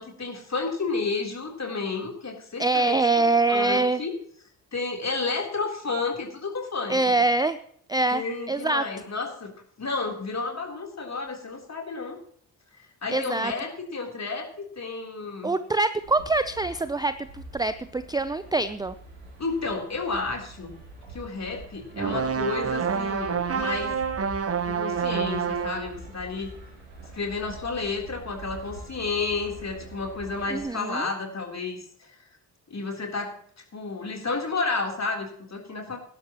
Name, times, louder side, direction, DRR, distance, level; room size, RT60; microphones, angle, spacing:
voice 1, 0.0-4.2 4.7-7.2 8.1-9.5 9.8-12.2 13.0-15.5 19.4-20.7 21.1-23.9 24.7-26.5 27.1-32.1 32.7-33.3 33.7-36.0, left 4 dB, 35° left, 1 dB, 3.7 m, -31 dB
voice 2, 2.6-4.0 6.9-7.6 7.9-8.2 8.5-8.8 13.1-13.5 15.4-18.9 30.5-31.1, right 3 dB, 10° right, 13 dB, 0.5 m, -24 dB
sound 1, 16.0-30.7, right 2 dB, 80° right, 3.6 m, -45 dB
sound 2, 21.9-25.9, right 6 dB, 30° right, 1.1 m, -28 dB
19.0 x 11.0 x 3.0 m, 0.62 s
figure-of-eight pair, 40°, 48 cm